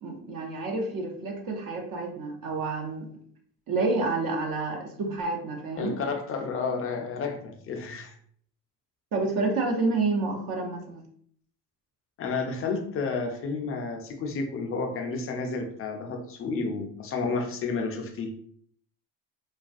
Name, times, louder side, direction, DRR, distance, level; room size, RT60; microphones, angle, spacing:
voice 1, 0.0-3.1 3.7-6.0 9.1-11.0, right 3 dB, 45° right, 1 dB, 0.7 m, -29 dB
voice 2, 5.8-8.2 12.2-18.3, left 4 dB, 30° left, 4 dB, 0.4 m, -31 dB
2.3 x 2.2 x 2.4 m, 0.62 s
hypercardioid pair, 75°, 48 cm